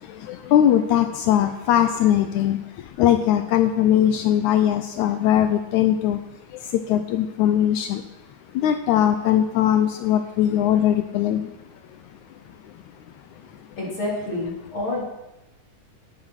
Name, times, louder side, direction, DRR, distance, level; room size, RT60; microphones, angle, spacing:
voice 1, 0.3-2.6 3.0-6.2 6.7-8.0 8.6-11.5, left 10 dB, 80° left, 9 dB, 1.8 m, -20 dB
voice 2, 13.8-15.0, left 2 dB, 40° left, -4 dB, 4.3 m, -28 dB
11.0 x 8.9 x 6.4 m, 0.96 s
omnidirectional pair, 3.7 m